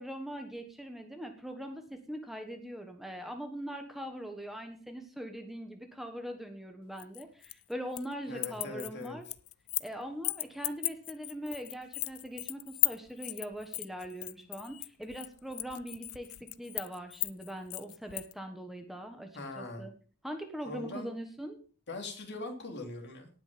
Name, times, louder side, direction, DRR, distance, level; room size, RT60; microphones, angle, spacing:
voice 1, 0.0-9.3 9.8-19.9 20.2-21.6, equal, ahead, 5 dB, 1.3 m, -41 dB
sound 1, 7.0-8.1 8.4-9.9 10.2-18.3, left 19 dB, 70° left, 0.5 m, -36 dB
voice 2, 8.3-9.2 19.3-19.9 20.6-21.1 21.9-23.3, left 2 dB, 50° left, 4 dB, 3.1 m, -41 dB
18.5 x 6.2 x 5.2 m, 0.39 s
head